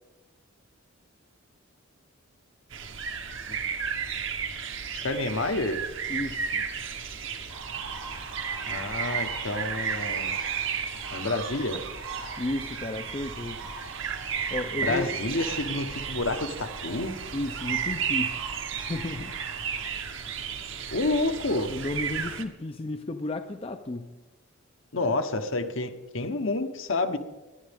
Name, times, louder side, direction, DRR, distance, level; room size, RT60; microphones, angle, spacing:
sound 1, 2.7-22.4, right 7 dB, 60° right, 1.0 m, -33 dB
voice 1, 5.0-5.8 8.7-10.3 11.1-11.8 14.8-17.1 20.9-21.7 24.9-27.2, left 2 dB, 65° left, 7 dB, 1.0 m, -29 dB
voice 2, 6.1-6.7 12.4-13.6 14.5-15.2 17.3-18.4 18.7-19.3 21.7-24.1, left 2 dB, 25° left, 7 dB, 0.5 m, -33 dB
sound 2, 7.5-19.9, right 4 dB, 80° right, 2.0 m, -43 dB
23.0 x 10.5 x 3.6 m, 1.2 s
head